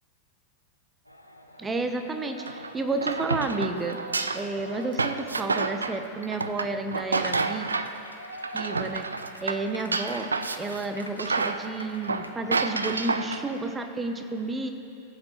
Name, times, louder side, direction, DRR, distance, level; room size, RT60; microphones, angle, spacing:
sound 1, 1.1-13.5, equal, 90° left, 0.6 m, -46 dB
voice 1, 1.6-4.0 4.3-7.7 8.5-9.1 9.4-10.3 10.6-14.7, right 3 dB, 15° right, 6 dB, 0.8 m, -31 dB
sound 2, 2.4-8.0 8.3-10.8 11.2-13.5, right 4 dB, 75° right, 0.3 m, -29 dB
18.0 x 7.6 x 3.0 m, 2.7 s
figure-of-eight pair, 90°, 0 cm